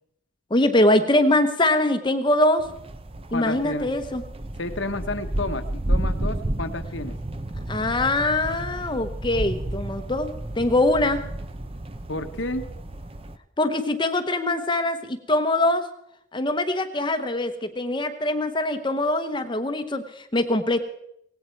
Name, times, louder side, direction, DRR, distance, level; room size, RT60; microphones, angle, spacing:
voice 1, 0.5-2.7 3.3-4.2 7.7-10.3 10.6-11.2 13.6-15.8 16.3-20.8, left 1 dB, 25° left, 9 dB, 1.0 m, -23 dB
sound 1, 2.6-13.4, right 1 dB, 30° right, 0.7 m, -31 dB
voice 2, 3.3-3.9 4.6-7.2 12.1-12.6, left 2 dB, 70° left, 8 dB, 1.2 m, -30 dB
18.0 x 16.5 x 4.6 m, 0.76 s
head